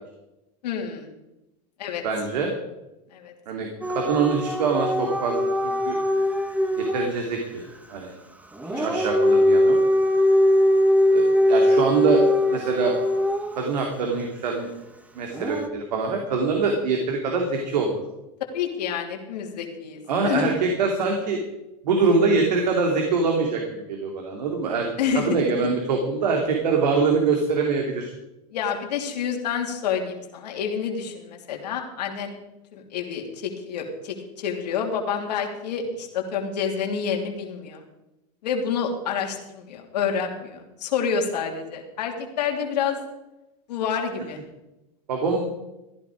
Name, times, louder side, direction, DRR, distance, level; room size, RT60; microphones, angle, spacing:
voice 1, 0.6-1.1 1.8-2.0 3.1-3.3 8.7-8.9 18.5-20.6 25.0-25.7 28.5-32.3 32.7-37.8 38.4-43.0 43.7-44.4, left 7 dB, 85° left, 2 dB, 2.9 m, -28 dB
voice 2, 2.0-2.5 3.5-3.7 3.9-5.4 5.6-6.0 6.8-8.1 8.8-9.8 11.1-12.2 12.5-12.9 13.6-14.7 15.2-18.0 20.1-21.4 21.8-24.9 25.1-28.1 45.1-45.4, right 4 dB, 90° right, 2 dB, 2.7 m, -24 dB
Dog / Siren, 3.8-7.1 8.5-13.7 15.3-15.7, left 1 dB, 5° right, 1.3 m, -21 dB
15.0 x 11.5 x 5.0 m, 0.94 s
supercardioid pair, 125°, 21 cm